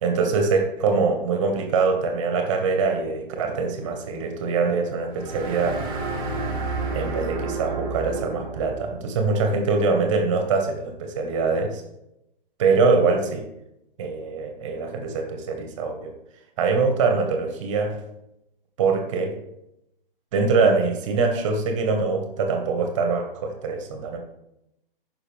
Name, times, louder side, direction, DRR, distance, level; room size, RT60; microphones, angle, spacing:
voice 1, 0.0-5.9 6.9-11.8 12.6-13.4 14.0-16.1 16.6-18.0 18.8-19.4 20.3-24.2, right 4 dB, 30° right, 4 dB, 1.6 m, -23 dB
sound 1, 5.1-8.9, right 3 dB, 15° right, 1.5 m, -30 dB
15.0 x 5.8 x 3.5 m, 0.87 s
figure-of-eight pair, 130°, 29 cm